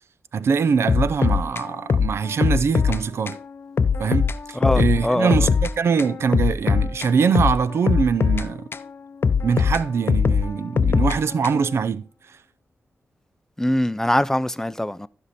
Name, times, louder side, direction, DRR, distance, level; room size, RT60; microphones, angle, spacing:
voice 1, 0.3-3.4 4.0-8.6 9.4-12.1, right 6 dB, 75° right, 0.5 m, -23 dB
sound 1, 0.9-3.0 3.3-3.4 3.8-5.7 6.0-8.9 9.2-11.8, left 5 dB, 60° left, 0.6 m, -21 dB
voice 2, 4.5-5.5 13.6-15.1, left 1 dB, 10° left, 0.5 m, -23 dB
14.5 x 5.4 x 4.2 m
cardioid pair, 75°, 5 cm